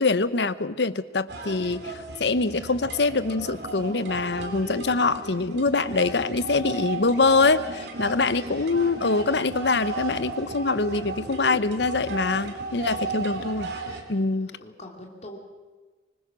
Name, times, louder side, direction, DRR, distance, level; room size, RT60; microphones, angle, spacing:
voice 1, 0.0-1.9 2.2-13.7 14.1-14.5, left 3 dB, 80° left, 15 dB, 0.9 m, -24 dB
sound 1, 1.3-14.0, right 3 dB, 75° right, 3.2 m, -35 dB
voice 2, 12.9-13.7 14.1-15.4, left 1 dB, 40° left, 1 dB, 3.1 m, -46 dB
25.0 x 20.5 x 6.2 m, 1.3 s
head